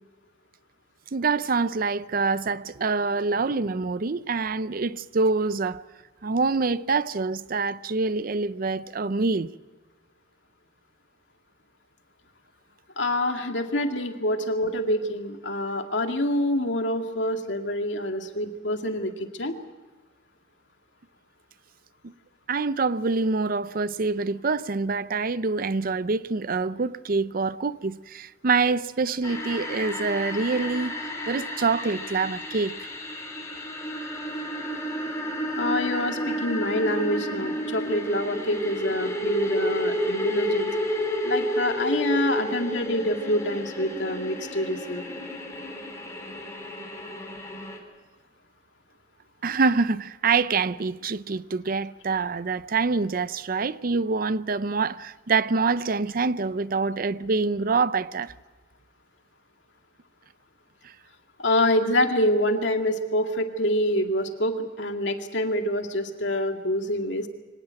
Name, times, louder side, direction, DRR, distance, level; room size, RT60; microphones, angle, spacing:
voice 1, 1.1-5.8 6.2-9.5 22.0-22.1 22.5-30.9 31.3-32.9 49.4-58.3 60.8-60.9, right 4 dB, 50° right, 0.6 m, -26 dB
voice 2, 13.0-19.6 35.6-40.7 41.2-45.1 61.4-67.3, left 1 dB, 75° left, 2.2 m, -26 dB
sound 1, 29.2-47.8, equal, 15° left, 3.9 m, -31 dB
24.5 x 18.0 x 7.7 m
head